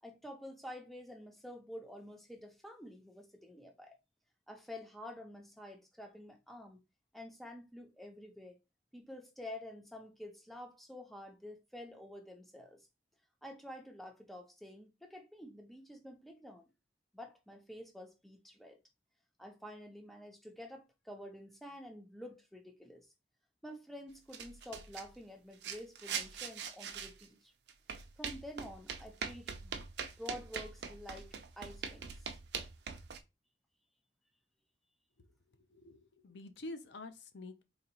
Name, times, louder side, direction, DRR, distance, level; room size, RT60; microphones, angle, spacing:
voice 1, 0.0-4.0 4.5-6.8 7.1-8.6 8.9-12.9 13.4-16.7 17.1-18.8 19.4-23.1 23.6-27.5 28.2-29.8 30.2-32.4, left 1 dB, ahead, 0.6 m, -49 dB
sound 1, 24.3-25.1 25.6-27.3 27.7-33.2, right 6 dB, 70° right, 0.5 m, -42 dB
voice 2, 35.6-37.6, left 2 dB, 75° left, 0.6 m, -48 dB
3.9 x 2.9 x 2.9 m
head